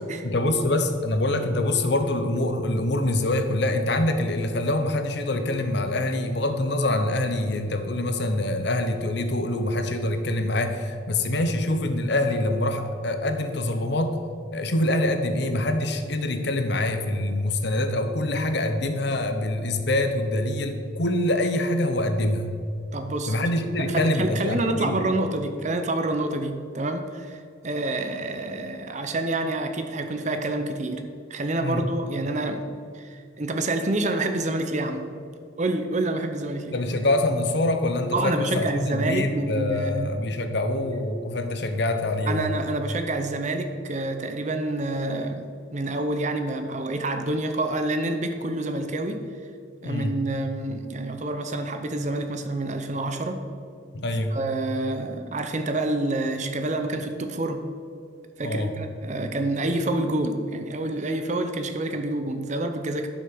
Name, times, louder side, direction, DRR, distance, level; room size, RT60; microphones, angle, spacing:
voice 1, 0.2-14.2 14.5-22.5 23.3-25.0 31.6-31.8 36.7-42.5 49.8-50.2 53.9-54.4 58.4-58.7, left 1 dB, 60° left, 7 dB, 1.0 m, -25 dB
voice 2, 22.9-23.3 23.8-32.7 32.9-35.1 35.6-36.8 38.1-40.1 42.3-49.3 49.8-53.4 54.3-57.7 58.4-63.1, right 2 dB, 35° right, 7 dB, 0.7 m, -28 dB
11.0 x 6.3 x 6.1 m, 2.3 s
head